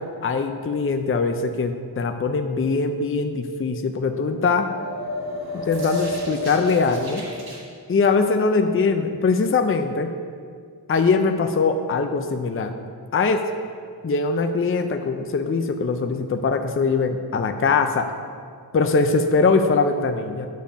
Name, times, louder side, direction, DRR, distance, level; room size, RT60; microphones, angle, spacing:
voice 1, 0.0-4.7 5.6-7.2 7.9-10.1 10.9-12.7 13.1-13.5 14.0-18.1 18.7-20.5, left 4 dB, 35° left, 6 dB, 0.5 m, -22 dB
sound 1, 4.3-7.6, left 1 dB, 65° right, 2.2 m, -31 dB
9.3 x 7.0 x 5.2 m, 2.2 s
wide cardioid pair, 95°, 40 cm